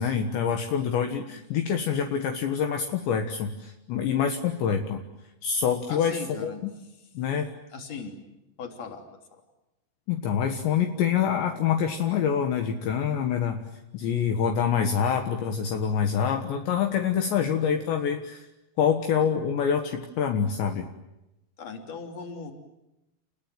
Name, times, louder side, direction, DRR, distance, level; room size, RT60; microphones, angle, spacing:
voice 1, 0.0-5.0 5.4-6.7 7.2-7.5 10.1-18.5 18.8-20.9, left 7 dB, 70° left, 5 dB, 3.5 m, -26 dB
voice 2, 1.3-1.7 5.9-6.6 7.7-8.2 8.6-9.0 21.6-22.5, left 4 dB, 35° left, 4 dB, 3.9 m, -38 dB
29.5 x 21.0 x 9.3 m, 0.92 s
omnidirectional pair, 5.7 m